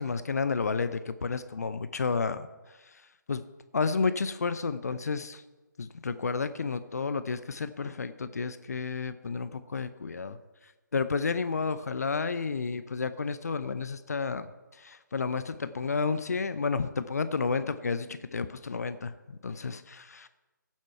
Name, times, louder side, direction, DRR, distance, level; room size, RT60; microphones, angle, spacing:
voice 1, 0.0-3.0 3.3-3.4 3.7-5.4 5.8-10.4 10.9-20.3, left 4 dB, 55° left, 12 dB, 0.6 m, -31 dB
16.5 x 7.4 x 4.5 m, 1.1 s
figure-of-eight pair, 145°, 11 cm